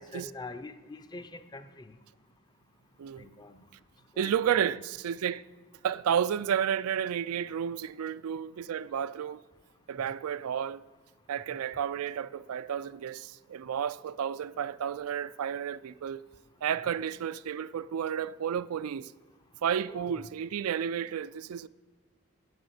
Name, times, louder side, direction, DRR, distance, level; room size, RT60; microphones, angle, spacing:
voice 1, 0.0-1.7 3.2-3.7 4.2-4.8 19.9-20.2, left 2 dB, 20° left, 0.5 m, -44 dB
voice 2, 4.2-5.5 5.8-9.4 9.9-10.8 11.3-16.2 16.6-19.1 19.6-21.7, right 8 dB, 85° right, 0.4 m, -31 dB
9.6 x 8.0 x 8.0 m
head